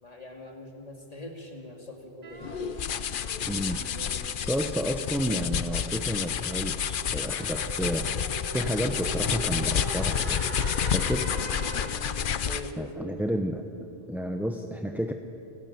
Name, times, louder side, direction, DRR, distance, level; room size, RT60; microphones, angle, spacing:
voice 1, 0.0-2.5 12.5-12.7, left 1 dB, 40° left, 1 dB, 2.8 m, -43 dB
sound 1, 2.2-6.0 6.3-14.1, right 3 dB, 55° right, 1.7 m, -46 dB
sound 2, 2.4-12.8, left 8 dB, 60° left, 0.8 m, -30 dB
voice 2, 3.5-3.8 4.4-8.1 8.5-10.5 10.9-11.3 12.8-15.1, equal, ahead, 4 dB, 0.7 m, -31 dB
sound 3, 6.4-12.1, right 2 dB, 30° right, 4.5 m, -41 dB
29.0 x 12.5 x 9.5 m, 2.8 s
omnidirectional pair, 1.0 m